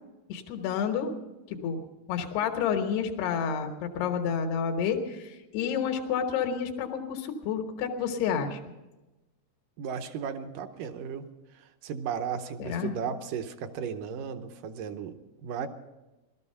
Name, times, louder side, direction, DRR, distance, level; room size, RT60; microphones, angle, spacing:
voice 1, 0.3-1.1 1.6-1.8 2.1-8.6 12.6-12.9, left 7 dB, 85° left, 5 dB, 3.2 m, -29 dB
voice 2, 9.8-11.3 11.5-15.7, right 7 dB, 75° right, 8 dB, 2.1 m, -35 dB
18.0 x 13.0 x 5.6 m, 1.1 s
omnidirectional pair, 4.5 m